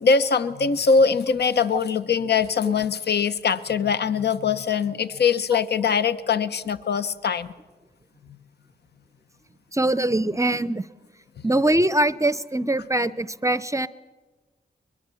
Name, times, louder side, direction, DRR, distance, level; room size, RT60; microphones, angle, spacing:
voice 1, 0.0-7.5, left 5 dB, 65° left, 13 dB, 0.8 m, -22 dB
voice 2, 9.7-10.8 11.4-13.9, right 1 dB, 15° right, 16 dB, 0.6 m, -22 dB
22.0 x 22.0 x 7.0 m, 1.3 s
cardioid pair, 75°, 18 cm